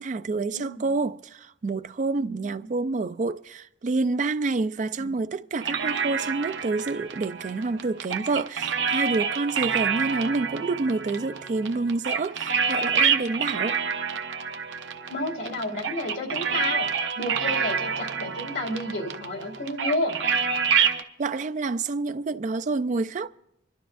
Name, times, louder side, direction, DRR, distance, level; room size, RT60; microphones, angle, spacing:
voice 1, 0.0-13.8 21.2-23.3, right 3 dB, 40° right, 0.4 m, -28 dB
voice 2, 0.5-0.8 2.2-2.7 5.0-5.2 15.1-20.2, left 1 dB, 75° left, 2.3 m, -31 dB
sound 1, 5.6-21.0, right 6 dB, 80° right, 0.7 m, -28 dB
25.5 x 12.0 x 2.5 m
head